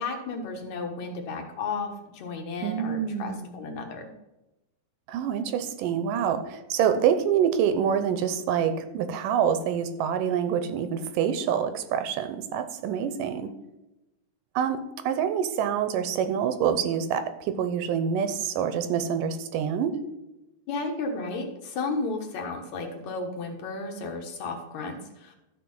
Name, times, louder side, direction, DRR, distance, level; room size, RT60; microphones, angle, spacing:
voice 1, 0.0-4.0 13.0-13.1 20.7-25.3, left 3 dB, 60° left, 3 dB, 2.3 m, -33 dB
voice 2, 2.6-3.5 5.1-13.5 14.6-14.8 15.1-20.0, right 8 dB, 75° right, 9 dB, 2.1 m, -26 dB
13.5 x 4.4 x 5.4 m, 0.96 s
omnidirectional pair, 4.3 m